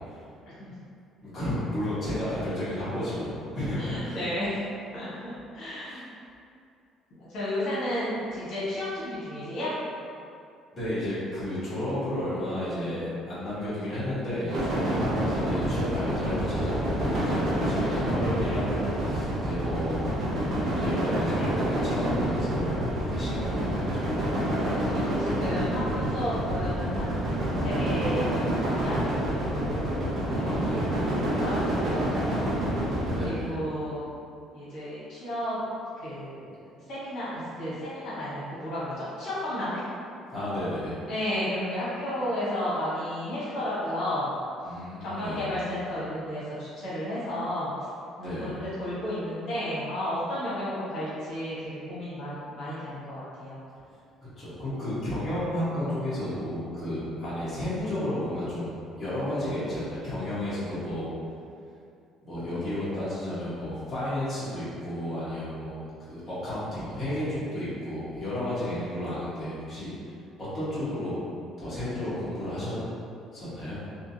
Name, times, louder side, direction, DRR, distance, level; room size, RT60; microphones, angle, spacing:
voice 1, 0.4-0.7 3.8-4.6 4.9-6.0 7.3-9.7 24.7-30.0 30.5-30.6 31.4-31.5 31.8-32.5 33.2-34.1 34.5-35.6 36.0-36.6 36.9-37.3 37.6-39.8 41.1-44.3 45.0-47.7 48.2-53.6, left 1 dB, 60° left, -10 dB, 1.3 m, -33 dB
voice 2, 1.2-4.2 5.9-6.0 10.7-20.1 20.6-22.7 23.1-23.8 30.3-31.1 33.1-33.6 40.3-41.0 44.6-45.5 48.2-48.6 54.4-58.7 59.0-61.1 62.2-69.9 70.4-71.2 71.6-72.8 73.3-73.8, left 1 dB, 20° left, -12 dB, 1.5 m, -32 dB
sound 1, 14.5-33.3, right 1 dB, 50° right, 0.8 m, -28 dB
3.6 x 2.9 x 2.8 m, 2.5 s
cardioid pair, 140°, 0 cm